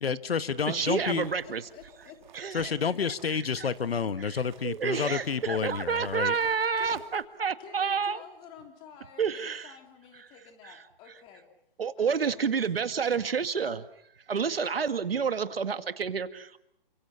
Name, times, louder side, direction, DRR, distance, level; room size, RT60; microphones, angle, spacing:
voice 1, 0.0-1.3 2.5-6.3, left 6 dB, 85° left, 1.4 m, -29 dB
sound 1, 0.6-7.3, right 7 dB, 50° right, 2.5 m, -53 dB
voice 2, 0.7-1.6 2.4-2.7 3.6-3.7 4.6-8.2 9.2-9.7 11.8-13.8 14.3-16.6, right 6 dB, 80° right, 2.0 m, -29 dB
voice 3, 1.4-2.2 4.0-5.0 5.5-5.7 6.8-7.1 7.6-11.4 12.0-12.9, left 8 dB, 15° left, 3.1 m, -51 dB
29.5 x 25.0 x 5.7 m
hypercardioid pair, 160°, 29 cm